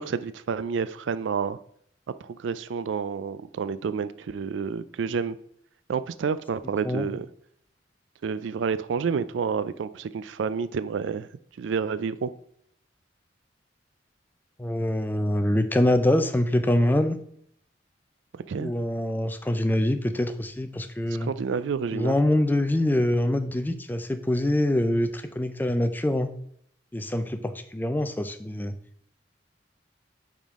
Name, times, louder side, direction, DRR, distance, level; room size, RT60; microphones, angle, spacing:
voice 1, 0.0-1.6 2.2-5.4 5.9-7.3 8.2-11.3 11.6-12.3 18.3-18.7 21.2-22.2, right 6 dB, 85° right, 0.4 m, -29 dB
voice 2, 14.6-17.2 18.6-21.3 21.9-26.3 26.9-28.7, left 1 dB, 10° left, 0.4 m, -24 dB
9.0 x 3.7 x 3.6 m
head